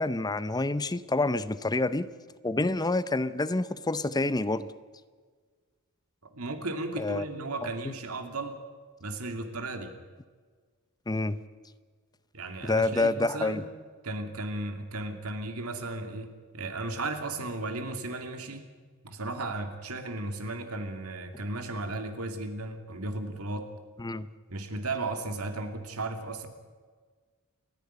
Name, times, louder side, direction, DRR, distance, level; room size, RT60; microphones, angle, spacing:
voice 1, 0.0-2.1 2.4-4.7 7.0-7.2 7.8-7.9 11.1-11.4 12.6-13.6 24.0-24.3, left 2 dB, 20° left, 0.6 m, -28 dB
voice 2, 6.2-8.6 9.0-10.0 12.3-13.6 14.0-18.6 19.0-23.7 24.5-26.5, right 2 dB, 85° right, 2.7 m, -35 dB
29.0 x 10.5 x 9.5 m
head